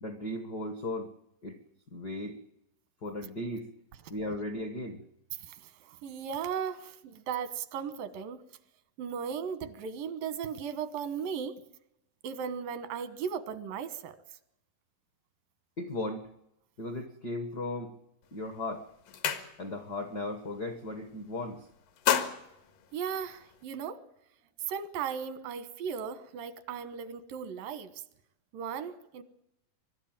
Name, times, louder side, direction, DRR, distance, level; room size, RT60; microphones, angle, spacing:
voice 1, 0.0-1.1 1.4-1.6 1.9-2.4 3.0-3.7 4.1-5.0 15.8-16.3 16.8-17.9 18.3-18.9 19.6-21.7, left 1 dB, 60° left, 7 dB, 1.0 m, -36 dB
voice 2, 5.4-8.4 9.0-11.6 12.2-14.2 22.9-24.0 24.7-28.0 28.5-29.2, right 7 dB, 85° right, 13 dB, 2.9 m, -36 dB
sound 1, 18.2-18.5 18.8-20.0 20.3-20.6 20.9-21.4 21.8-23.6, left 9 dB, 80° left, 3.2 m, -32 dB
23.5 x 12.5 x 8.9 m, 0.83 s
omnidirectional pair, 3.9 m